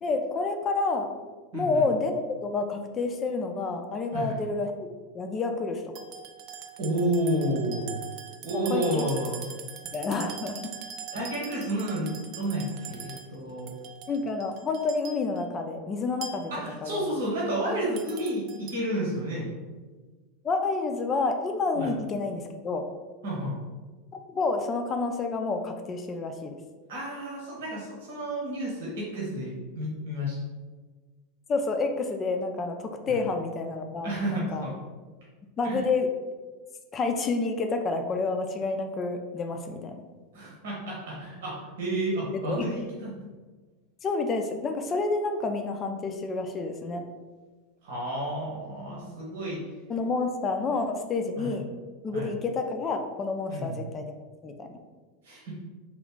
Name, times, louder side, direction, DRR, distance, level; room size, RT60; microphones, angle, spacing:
voice 1, 0.0-1.1 1.5-4.7 5.1-5.8 8.6-9.1 9.9-10.7 14.1-16.5 16.8-17.0 20.4-22.9 24.3-26.6 31.5-34.7 35.6-36.1 36.9-40.0 42.3-42.7 44.0-47.0 49.0-49.1 49.9-51.7 52.0-54.1 54.4-54.7, left 3 dB, 30° left, 6 dB, 0.4 m, -29 dB
voice 2, 1.5-1.8 4.1-4.4 6.8-8.0 8.4-9.5 11.1-13.7 16.5-19.5 21.7-21.9 23.2-23.6 26.9-30.4 33.1-33.2 34.0-34.7 35.6-35.8 40.3-43.1 47.8-49.6 51.4-51.5 52.1-52.3 53.5-53.8 55.2-55.6, right 1 dB, 75° right, -4 dB, 1.0 m, -31 dB
sound 1, 5.9-15.4 16.2-16.7 18.0-18.7, right 7 dB, 50° right, 0.4 m, -42 dB
3.1 x 2.4 x 3.6 m, 1.3 s
hypercardioid pair, 95°, 0 cm